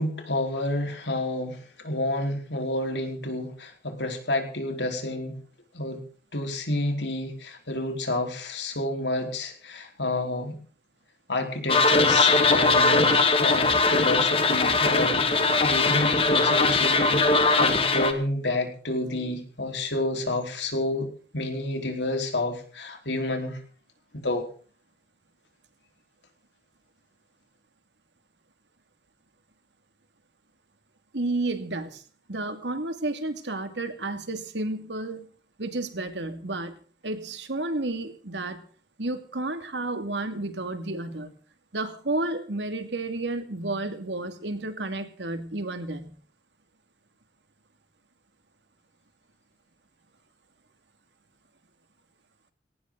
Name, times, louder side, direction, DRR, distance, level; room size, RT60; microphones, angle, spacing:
voice 1, 0.0-5.4 5.7-6.0 6.3-10.5 11.3-21.1 21.3-23.6 24.1-24.5, left 1 dB, 80° left, 4 dB, 4.4 m, -29 dB
sound 1, 11.7-18.1, left 3 dB, 30° left, 2.0 m, -21 dB
voice 2, 31.1-32.0 32.3-35.3 35.6-36.8 37.0-38.6 39.0-41.3 41.7-46.1, right 2 dB, 85° right, 8 dB, 2.5 m, -31 dB
19.0 x 18.5 x 4.0 m, 0.42 s
head